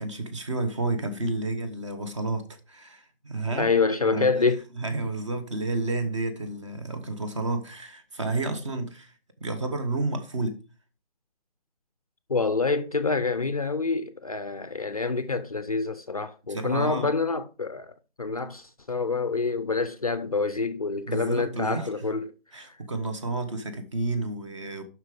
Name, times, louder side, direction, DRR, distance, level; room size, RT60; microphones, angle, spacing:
voice 1, 0.0-3.7 4.1-4.3 4.8-9.1 9.4-10.6 16.5-17.1 21.1-22.1 22.5-24.8, right 2 dB, 30° right, 1.2 m, -31 dB
voice 2, 3.6-4.6 12.3-17.9 18.2-22.3, left 4 dB, 40° left, 0.5 m, -27 dB
7.6 x 6.0 x 4.8 m
hypercardioid pair, 170°, 30 cm